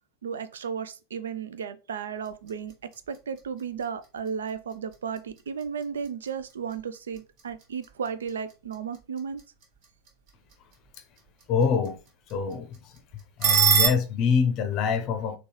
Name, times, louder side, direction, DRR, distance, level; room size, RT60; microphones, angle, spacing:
voice 1, 0.2-2.7 3.1-9.4, right 6 dB, 70° right, 0.3 m, -34 dB
sound 1, 2.1-13.9, right 7 dB, 45° right, 1.4 m, -32 dB
voice 2, 11.5-12.0 12.3-13.0 13.4-15.4, left 6 dB, 40° left, 0.6 m, -25 dB
3.8 x 2.3 x 2.9 m
figure-of-eight pair, 85°, 0 cm